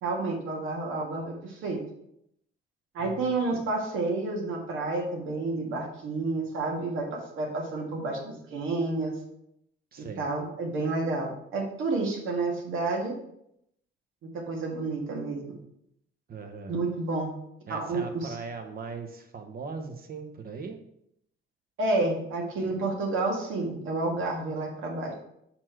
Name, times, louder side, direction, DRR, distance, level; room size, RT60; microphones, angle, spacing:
voice 1, 0.0-1.8 2.9-9.2 10.0-13.1 14.5-15.6 16.7-17.3 17.7-18.3 21.8-25.1, right 3 dB, 85° right, 0 dB, 1.7 m, -30 dB
voice 2, 3.0-3.3 9.9-10.3 16.3-16.8 17.7-20.8, right 4 dB, 50° right, 5 dB, 1.0 m, -39 dB
6.3 x 4.4 x 4.5 m, 0.76 s
cardioid pair, 90°, 20 cm